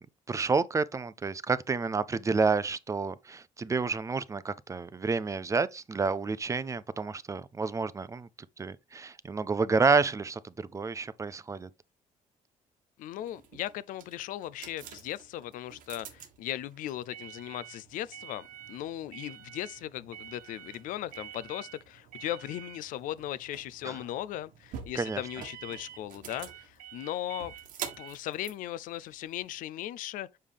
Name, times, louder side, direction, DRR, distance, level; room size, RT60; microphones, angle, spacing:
voice 1, 0.3-8.3 8.6-11.7 23.8-24.0 25.0-25.2, right 4 dB, 25° right, 0.5 m, -29 dB
voice 2, 13.0-27.5 28.0-30.3, left 13 dB, 85° left, 0.5 m, -38 dB
sound 1, 13.2-29.6, right 9 dB, 90° right, 1.5 m, -47 dB
6.5 x 5.6 x 3.4 m
cardioid pair, 120°, 13 cm